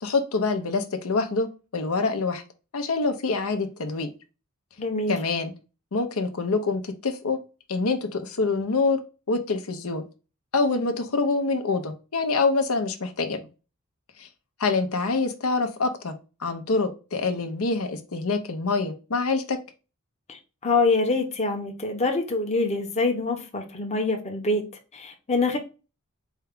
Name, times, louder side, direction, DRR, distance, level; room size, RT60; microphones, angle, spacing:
voice 1, 0.0-1.5 1.7-2.4 2.7-4.1 5.1-5.5 5.9-7.4 7.7-9.0 9.3-10.0 10.5-13.4 14.2-14.3 14.6-16.1 16.4-19.6, left 3 dB, 80° left, 0.7 m, -25 dB
voice 2, 4.8-5.2 20.3-24.6 24.9-25.6, left 3 dB, 30° left, 0.8 m, -25 dB
4.5 x 2.3 x 3.6 m
head